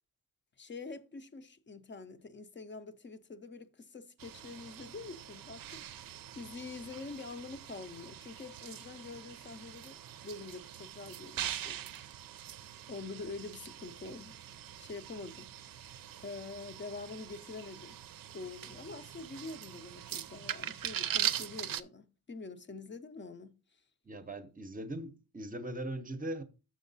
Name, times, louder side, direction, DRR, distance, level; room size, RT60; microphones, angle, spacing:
voice 1, 0.6-10.0 10.2-11.8 12.9-15.5 16.2-18.0 18.3-23.6, left 3 dB, 30° left, 0.6 m, -46 dB
sound 1, 4.2-21.8, right 10 dB, 65° right, 0.5 m, -42 dB
voice 2, 24.0-26.4, right 1 dB, 25° right, 0.7 m, -40 dB
6.9 x 6.3 x 3.9 m
wide cardioid pair, 175°, 36 cm